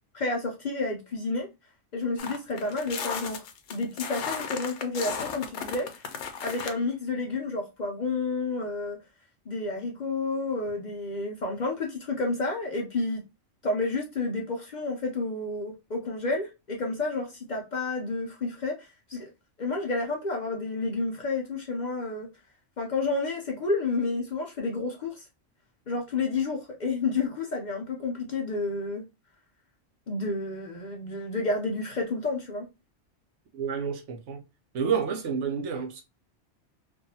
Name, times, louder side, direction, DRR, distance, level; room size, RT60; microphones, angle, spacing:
voice 1, 0.1-1.5 1.9-3.4 3.7-5.9 6.4-9.0 9.5-13.2 13.6-18.7 19.1-19.3 19.6-22.3 22.8-25.2 25.9-29.0 30.1-32.7, left 3 dB, 50° left, 0.6 m, -30 dB
sound 1, 2.2-6.7, left 6 dB, 90° left, 0.9 m, -35 dB
voice 2, 33.5-34.4 34.7-36.0, right 6 dB, 80° right, 1.0 m, -29 dB
2.6 x 2.3 x 2.6 m
omnidirectional pair, 1.2 m